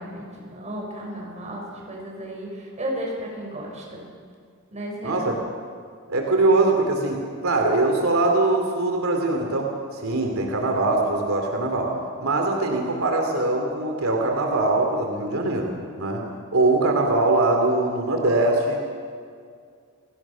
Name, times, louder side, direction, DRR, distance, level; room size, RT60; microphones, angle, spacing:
voice 1, 0.0-4.0 4.7-5.4, equal, 35° right, -1 dB, 6.5 m, -34 dB
voice 2, 5.0-5.4 6.1-11.9 12.2-15.7 16.0-16.2 16.5-18.8, right 2 dB, 85° right, 2 dB, 2.9 m, -22 dB
29.0 x 18.0 x 6.3 m, 2.2 s
head